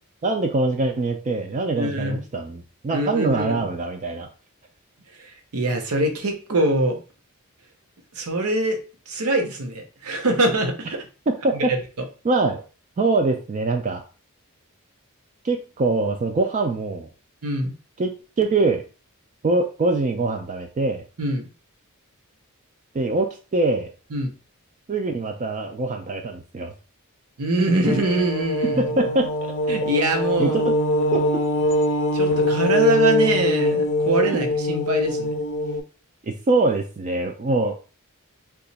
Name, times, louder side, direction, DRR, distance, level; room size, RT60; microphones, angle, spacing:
voice 1, 0.2-4.3 11.3-11.7 12.2-12.6 13.0-14.0 15.4-17.1 18.0-18.8 19.4-21.0 22.9-23.9 24.9-26.7 28.8-29.3 30.4-30.8 31.1-31.4 36.2-37.7, right 3 dB, 35° right, 4 dB, 0.3 m, -23 dB
voice 2, 1.7-2.2 2.9-3.7 5.1-7.0 8.1-8.8 9.1-11.0 11.5-12.1 17.4-17.7 21.2-21.5 24.1-24.3 27.4-28.8 29.7-30.6 32.1-35.3, right 1 dB, 80° right, 4 dB, 0.8 m, -23 dB
sound 1, 27.8-35.8, left 1 dB, 55° left, 0.5 m, -23 dB
2.8 x 2.3 x 4.0 m, 0.35 s
head